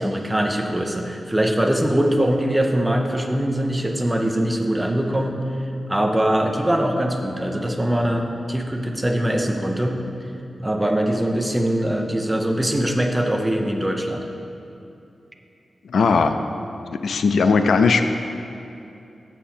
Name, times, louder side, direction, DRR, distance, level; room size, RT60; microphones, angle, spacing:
voice 1, 0.0-5.4 5.9-10.0 10.6-14.2, right 1 dB, 10° right, 3 dB, 0.5 m, -22 dB
voice 2, 15.9-16.3 16.9-18.0, left 4 dB, 75° left, 8 dB, 0.4 m, -18 dB
7.3 x 6.8 x 4.3 m, 2.8 s
wide cardioid pair, 180°, 0 cm